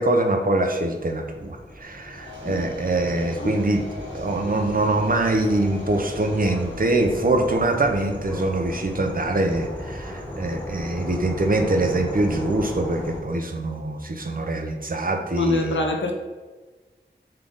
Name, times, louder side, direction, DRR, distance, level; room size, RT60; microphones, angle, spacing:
voice 1, 0.0-3.8 4.1-15.8, right 2 dB, 50° right, 3 dB, 0.6 m, -23 dB
sound 1, 1.1-13.2, left 1 dB, 10° left, 1.1 m, -37 dB
sound 2, 2.1-7.3, left 1 dB, 80° right, 1.1 m, -40 dB
voice 2, 15.3-16.1, left 2 dB, 75° left, 3 dB, 0.6 m, -25 dB
3.5 x 3.3 x 3.9 m, 1.3 s
wide cardioid pair, 55°, 20 cm